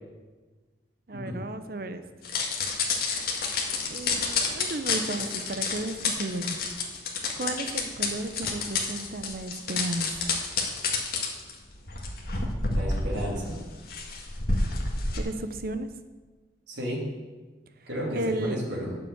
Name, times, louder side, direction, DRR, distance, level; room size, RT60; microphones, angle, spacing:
voice 1, 1.1-2.0 3.9-6.6 7.4-10.3 15.1-15.9 18.1-18.6, right 2 dB, 55° right, 10 dB, 0.8 m, -33 dB
sound 1, 2.2-15.2, left 4 dB, 55° left, 1.9 m, -29 dB
voice 2, 12.7-13.6 16.7-17.0 17.9-18.9, equal, 75° right, -5 dB, 3.2 m, -32 dB
9.9 x 7.1 x 7.9 m, 1.3 s
head